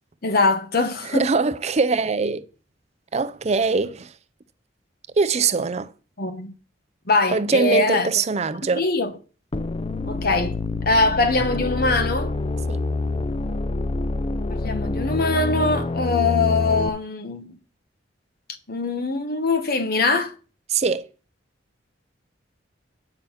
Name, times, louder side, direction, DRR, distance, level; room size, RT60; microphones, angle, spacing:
voice 1, 0.2-1.3 6.2-6.5 7.1-8.1 8.7-9.1 10.1-10.6 10.8-12.3 14.5-17.6 18.7-20.3, left 3 dB, 55° left, 1.2 m, -22 dB
voice 2, 1.1-2.4 3.1-4.1 5.2-5.9 7.3-8.8 12.7-12.8 20.7-21.0, right 4 dB, 35° right, 0.5 m, -22 dB
sound 1, 9.5-16.9, left 3 dB, 30° left, 0.4 m, -26 dB
9.1 x 5.5 x 5.6 m
head